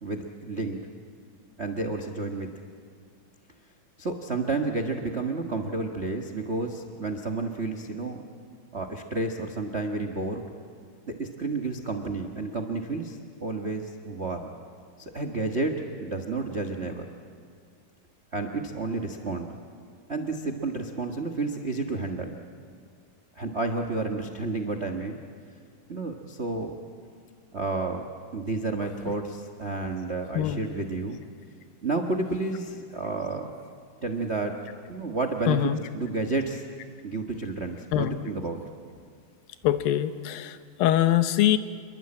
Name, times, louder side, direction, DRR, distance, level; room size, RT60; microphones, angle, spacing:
voice 1, 0.0-0.9 1.6-2.5 4.0-8.2 8.7-10.4 11.1-14.5 15.0-17.0 18.3-19.5 20.1-22.3 23.3-25.2 25.9-26.7 27.5-28.1 28.3-31.2 31.8-33.5 34.0-34.6 34.9-36.6 37.0-38.6, right 3 dB, 80° right, 4 dB, 0.6 m, -31 dB
voice 2, 35.5-35.8 37.9-38.2 39.6-41.6, left 12 dB, 90° left, 11 dB, 2.7 m, -23 dB
28.5 x 22.5 x 8.8 m, 2.2 s
omnidirectional pair, 3.9 m